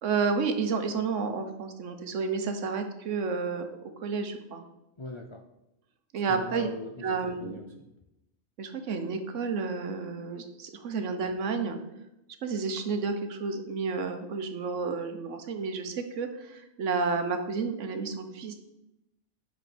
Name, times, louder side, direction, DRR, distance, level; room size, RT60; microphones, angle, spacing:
voice 1, 0.0-4.6 6.1-6.7 7.0-7.6 8.6-11.8 12.4-18.5, right 4 dB, 70° right, 7 dB, 1.2 m, -31 dB
voice 2, 5.0-5.4 6.3-7.9, left 3 dB, 45° left, 4 dB, 0.3 m, -41 dB
8.5 x 5.8 x 4.3 m, 0.91 s
omnidirectional pair, 1.3 m